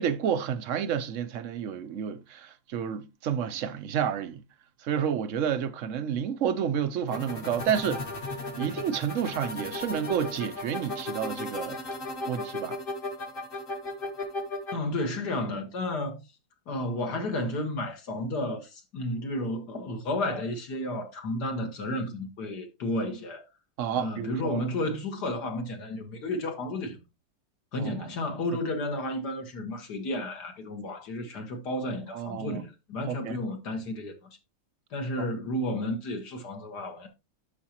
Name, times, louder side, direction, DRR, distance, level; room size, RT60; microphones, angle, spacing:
voice 1, 0.0-4.4 4.8-8.0 8.6-11.8 12.3-12.8 23.8-24.6 27.8-28.1 32.1-32.6 33.1-33.4 35.2-35.3, right 8 dB, 60° right, 0.8 m, -30 dB
sound 1, 7.1-14.7, left 2 dB, 30° left, 1.3 m, -35 dB
voice 2, 14.7-16.2 16.7-23.5 24.0-27.0 27.7-34.1 34.9-37.1, left 1 dB, 60° left, 2.0 m, -32 dB
12.0 x 5.1 x 2.9 m
omnidirectional pair, 2.0 m